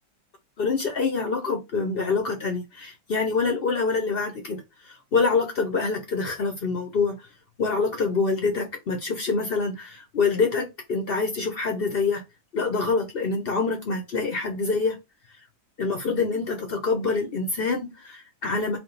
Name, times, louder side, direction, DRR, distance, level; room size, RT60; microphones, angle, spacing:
voice 1, 0.6-7.1 7.6-12.2 12.5-15.0 15.8-18.8, left 4 dB, 80° left, 0.5 m, -26 dB
4.8 x 2.2 x 4.0 m
omnidirectional pair, 2.1 m